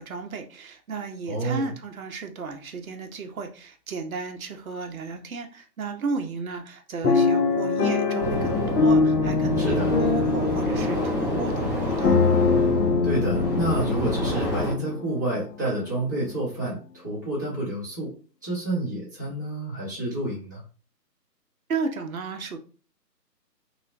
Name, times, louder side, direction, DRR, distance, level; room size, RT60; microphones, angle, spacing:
voice 1, 0.0-12.2 21.7-22.6, right 4 dB, 60° right, 5 dB, 0.7 m, -34 dB
voice 2, 1.3-1.7 9.6-9.9 13.0-18.1 18.4-20.6, right 1 dB, 10° right, -11 dB, 0.7 m, -29 dB
sound 1, 7.0-15.1 15.7-15.8 16.1-16.4, left 4 dB, 70° left, 0.8 m, -24 dB
sound 2, 8.2-14.7, left 1 dB, 35° left, 1.2 m, -28 dB
3.0 x 2.1 x 2.6 m, 0.38 s
figure-of-eight pair, 155°, 50 cm